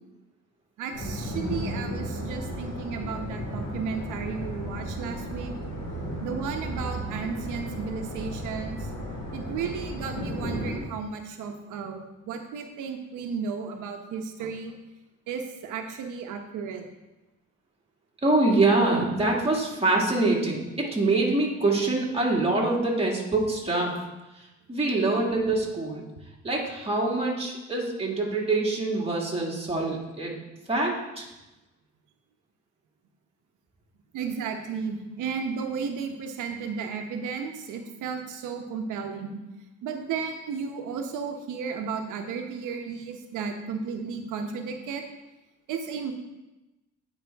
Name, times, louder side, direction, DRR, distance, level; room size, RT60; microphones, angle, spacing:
voice 1, 0.8-5.5 6.2-8.9 9.3-14.7 15.3-16.8 34.1-39.4 39.8-45.0 45.7-46.1, right 5 dB, 85° right, 4 dB, 1.0 m, -34 dB
sound 1, 0.9-10.8, equal, 85° left, 2.4 m, -34 dB
voice 2, 18.2-23.9 24.7-26.1 26.4-30.4 30.7-31.2, right 2 dB, 20° right, -3 dB, 2.0 m, -25 dB
9.0 x 5.1 x 3.5 m, 1.0 s
cardioid pair, 90°, 30 cm